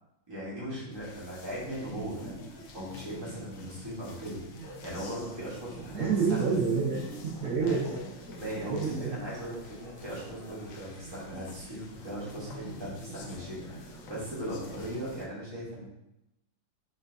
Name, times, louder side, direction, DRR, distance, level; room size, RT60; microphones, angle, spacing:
voice 1, 0.3-4.4 4.8-6.6 7.6-7.8 8.3-15.9, right 1 dB, 15° right, -7 dB, 0.9 m, -38 dB
sound 1, 0.9-15.3, left 1 dB, 80° left, 0.7 m, -47 dB
sound 2, 4.6-10.8, right 2 dB, 65° right, 1.6 m, -53 dB
voice 2, 5.9-8.0 8.6-9.2, right 5 dB, 80° right, -5 dB, 0.7 m, -28 dB
5.3 x 2.6 x 2.6 m, 0.90 s
omnidirectional pair, 2.1 m